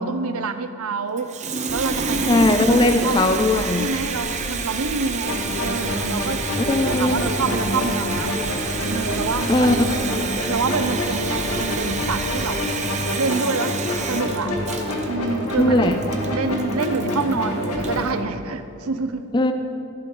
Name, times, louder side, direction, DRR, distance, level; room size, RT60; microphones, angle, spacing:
voice 1, 0.0-1.3 1.7-3.2 3.8-6.4 6.8-8.3 8.9-9.8 10.5-12.6 13.2-13.8 14.1-14.5 15.1-16.0 16.3-19.3, right 4 dB, 75° right, 10 dB, 0.7 m, -27 dB
Water tap faucet, 1.2-18.1, right 5 dB, 30° right, 0.7 m, -29 dB
sound 1, 1.7-12.6, left 2 dB, 60° left, 0.7 m, -37 dB
voice 2, 2.3-3.9 6.6-7.3 9.5-9.8 15.6-16.0 19.3-19.5, left 2 dB, 20° left, 8 dB, 0.4 m, -19 dB
sound 2, 5.2-18.0, left 1 dB, 80° left, 2.1 m, -27 dB
15.0 x 11.5 x 3.9 m, 2.7 s
head